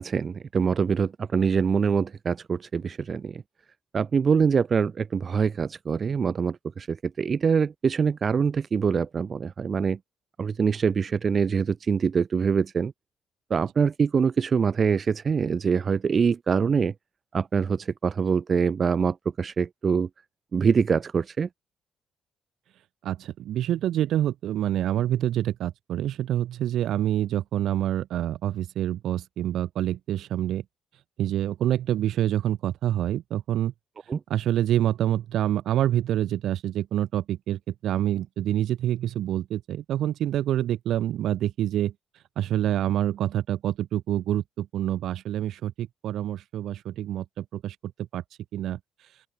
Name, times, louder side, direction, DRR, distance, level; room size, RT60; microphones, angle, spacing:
voice 1, 0.0-3.4 3.9-10.0 10.4-12.9 13.5-16.9 17.3-20.1 20.5-21.5 34.1-34.2, right 6 dB, 45° right, 0.4 m, -24 dB
voice 2, 23.0-30.6 31.2-33.7 34.3-41.9 42.4-48.2 48.5-48.8, right 12 dB, 75° right, 1.4 m, -27 dB
open air
cardioid pair, 90°, 0 cm